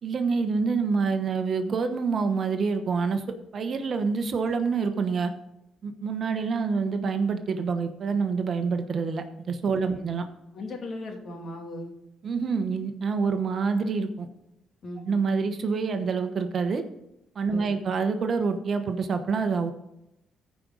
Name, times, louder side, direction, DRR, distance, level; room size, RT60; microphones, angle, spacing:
voice 1, 0.0-5.3 5.8-10.2 12.2-14.3 15.1-16.8 17.3-19.7, right 5 dB, 50° right, 8 dB, 1.1 m, -27 dB
voice 2, 10.5-11.9 14.8-15.1 17.5-17.8, left 1 dB, 55° left, 2 dB, 2.3 m, -37 dB
14.5 x 5.2 x 4.0 m, 0.86 s
cardioid pair, 90°, 0 cm